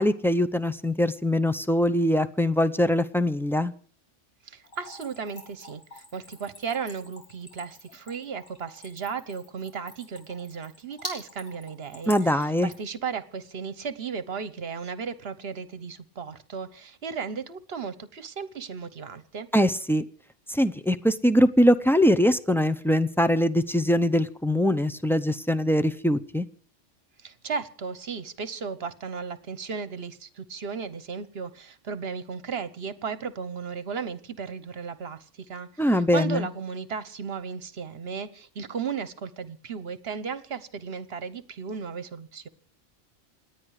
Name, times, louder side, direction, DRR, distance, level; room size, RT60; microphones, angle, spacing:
voice 1, 0.0-3.7 12.1-12.7 19.5-20.0 20.5-26.5 35.8-36.5, equal, 5° left, 9 dB, 0.3 m, -22 dB
voice 2, 4.4-19.5 27.2-42.5, right 6 dB, 55° right, 15 dB, 1.2 m, -35 dB
Splash splatter / Trickle dribble, 4.6-12.9, left 1 dB, 90° left, 4.1 m, -45 dB
28.0 x 9.5 x 4.8 m, 0.43 s
omnidirectional pair, 1.3 m